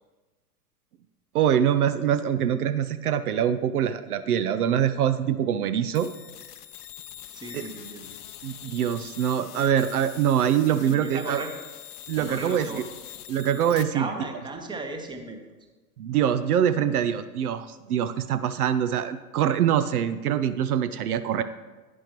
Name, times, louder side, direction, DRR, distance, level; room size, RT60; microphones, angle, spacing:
voice 1, 1.3-6.1 7.5-7.7 8.4-11.4 12.1-12.8 13.3-14.1 16.0-21.4, right 9 dB, 70° right, 12 dB, 0.6 m, -24 dB
sound 1, 6.0-13.8, left 10 dB, 80° left, 0.8 m, -43 dB
voice 2, 7.3-8.2 10.8-11.5 12.1-12.8 13.7-15.4, right 2 dB, 10° right, 5 dB, 0.9 m, -36 dB
11.0 x 9.3 x 3.0 m, 1.2 s
hypercardioid pair, 105°, 46 cm